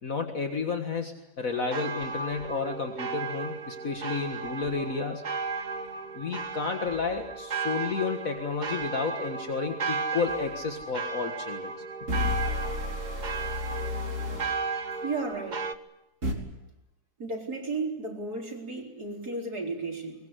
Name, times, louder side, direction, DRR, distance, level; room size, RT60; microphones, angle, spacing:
voice 1, 0.0-5.2 6.1-11.7, left 4 dB, 55° left, 4 dB, 2.1 m, -31 dB
sound 1, 1.5-15.8, right 4 dB, 35° right, 0.9 m, -35 dB
sound 2, 10.3-10.4 12.1-14.6 16.2-16.3, left 2 dB, 50° right, 3.9 m, -31 dB
voice 2, 15.0-15.7 17.2-20.1, right 3 dB, 70° right, 0 dB, 4.8 m, -33 dB
23.0 x 21.5 x 8.2 m, 0.93 s
omnidirectional pair, 1.7 m